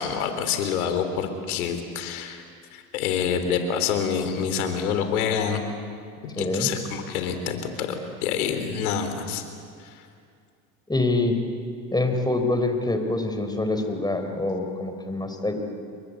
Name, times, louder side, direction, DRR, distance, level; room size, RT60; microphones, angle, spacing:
voice 1, 0.0-2.4 2.7-5.6 6.4-9.4, left 7 dB, 80° left, 7 dB, 3.7 m, -27 dB
voice 2, 6.4-6.7 10.9-11.4 11.9-15.6, left 2 dB, 10° left, 6 dB, 4.7 m, -25 dB
29.5 x 23.0 x 8.4 m, 2.4 s
hypercardioid pair, 85°, 43 cm